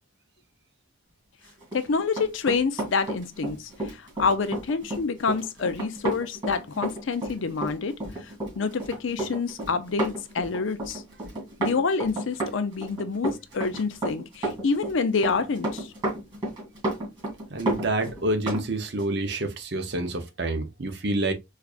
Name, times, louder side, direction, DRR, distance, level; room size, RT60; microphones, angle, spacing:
Run, 1.6-18.7 19.0-19.1, right 1 dB, 20° right, 2.3 m, -31 dB
voice 1, 1.7-3.6 4.2-7.9 8.6-11.0 11.6-15.9, left 4 dB, 80° left, 0.5 m, -27 dB
voice 2, 17.5-21.3, right 2 dB, 60° right, 0.7 m, -28 dB
4.5 x 2.4 x 2.4 m
head